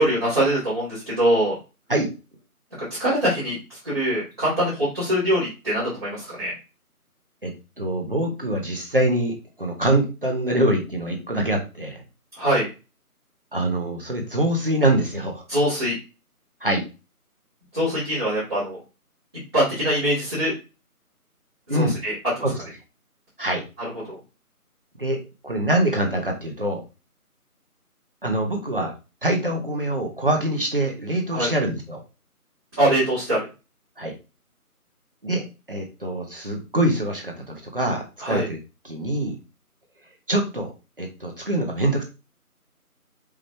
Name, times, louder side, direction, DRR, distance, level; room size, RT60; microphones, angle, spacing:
voice 1, 0.0-1.5 2.9-6.5 12.4-12.7 15.5-16.0 17.7-18.8 19.5-20.5 21.7-22.4 24.1-24.2 31.3-31.5 32.8-33.5 38.2-38.5, right 1 dB, 15° right, -14 dB, 1.9 m, -23 dB
voice 2, 7.4-12.0 13.5-15.4 16.6-16.8 21.7-22.0 22.4-22.6 23.4-23.6 25.0-26.8 28.2-28.9 29.2-32.0 34.0-34.2 35.2-38.6 38.8-39.4 40.3-40.7 41.0-42.0, right 1 dB, 35° right, 2 dB, 0.9 m, -24 dB
4.9 x 3.0 x 3.3 m, 0.29 s
figure-of-eight pair, 170°, 46 cm